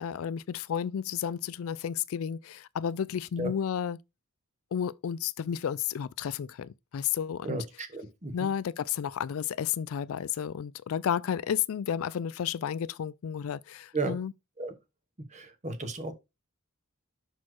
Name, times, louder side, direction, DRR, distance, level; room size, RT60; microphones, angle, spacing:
voice 1, 0.0-4.0 4.7-7.6 8.3-14.3, left 8 dB, 70° left, 0.3 m, -32 dB
voice 2, 7.4-8.5 13.9-14.2 14.6-14.7 15.3-16.1, right 3 dB, 35° right, 1.0 m, -34 dB
6.0 x 4.3 x 4.6 m
head